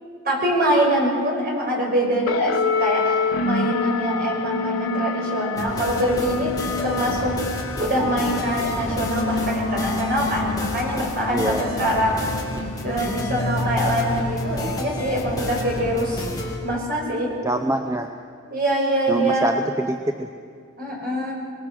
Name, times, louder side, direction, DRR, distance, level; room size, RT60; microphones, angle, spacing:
voice 1, 0.2-6.5 6.8-12.2 12.8-16.2 16.6-17.3 18.5-19.5 20.8-21.3, right 1 dB, 45° right, -2 dB, 6.0 m, -24 dB
sound 1, 2.3-17.0, left 4 dB, 85° left, 1.0 m, -28 dB
sound 2, 5.5-16.6, left 1 dB, 15° left, 2.3 m, -31 dB
voice 2, 11.3-11.7 17.4-18.1 19.1-20.3, right 1 dB, 15° right, 6 dB, 0.6 m, -24 dB
24.5 x 20.5 x 6.3 m, 2.2 s
head